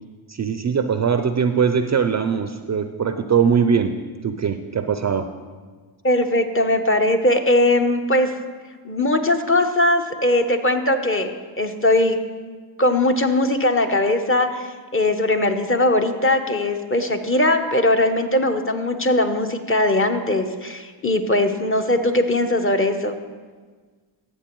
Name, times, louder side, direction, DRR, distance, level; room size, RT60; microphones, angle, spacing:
voice 1, 0.3-4.0 4.2-5.3, right 6 dB, 35° right, 9 dB, 0.4 m, -21 dB
voice 2, 6.0-8.3 8.8-12.2 12.8-23.2, left 1 dB, 25° left, 6 dB, 0.8 m, -20 dB
13.5 x 7.2 x 3.0 m, 1.5 s
cardioid pair, 60°, 50 cm